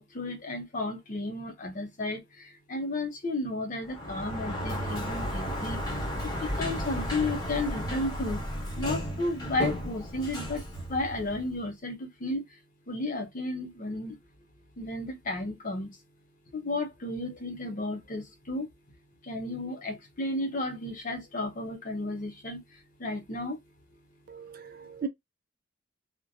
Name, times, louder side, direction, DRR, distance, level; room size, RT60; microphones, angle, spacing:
voice 1, 0.0-8.4 8.8-10.6 10.9-12.5 12.9-14.2 14.8-16.0 16.5-18.7 19.2-23.6, left 2 dB, 40° left, 0.5 m, -33 dB
Sliding door, 3.8-11.6, equal, 20° left, 1.0 m, -34 dB
voice 2, 24.3-25.1, right 7 dB, 45° right, 0.3 m, -37 dB
2.6 x 2.1 x 2.6 m
head